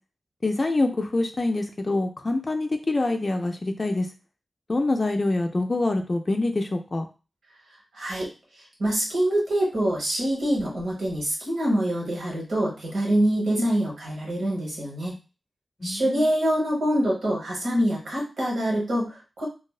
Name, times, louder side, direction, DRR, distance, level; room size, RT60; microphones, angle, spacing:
voice 1, 0.4-4.1 4.7-7.1 13.6-13.7 15.8-16.3, left 2 dB, 45° left, 4 dB, 0.4 m, -25 dB
voice 2, 7.9-8.3 8.8-15.1 15.8-19.4, right 1 dB, 85° right, -3 dB, 1.1 m, -25 dB
2.6 x 2.0 x 2.3 m, 0.31 s
cardioid pair, 50°, 0 cm